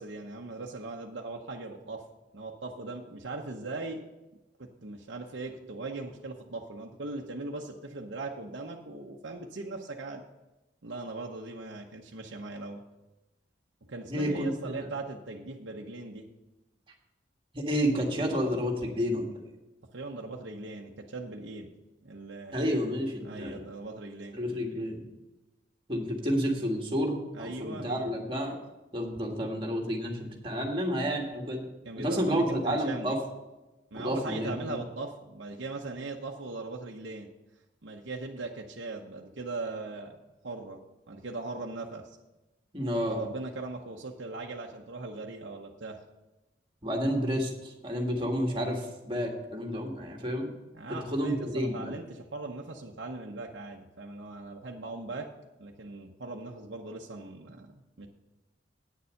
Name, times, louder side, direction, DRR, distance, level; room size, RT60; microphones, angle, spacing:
voice 1, 0.0-2.0 2.3-4.0 4.6-10.2 10.8-12.8 13.9-16.3 19.9-21.7 22.0-22.7 23.2-24.4 27.3-28.3 31.8-33.2 33.9-37.3 37.8-40.2 40.4-42.2 43.0-46.0 50.7-55.3 55.6-58.1, right 3 dB, 70° right, 0 dB, 0.8 m, -39 dB
voice 2, 14.1-14.8 17.5-19.3 22.5-23.6 24.3-25.0 25.9-28.6 28.9-31.6 32.0-33.2 33.9-34.5 42.7-43.3 46.8-50.5 51.1-51.9, equal, 25° right, 1 dB, 1.7 m, -30 dB
9.3 x 7.0 x 6.4 m, 1.0 s
head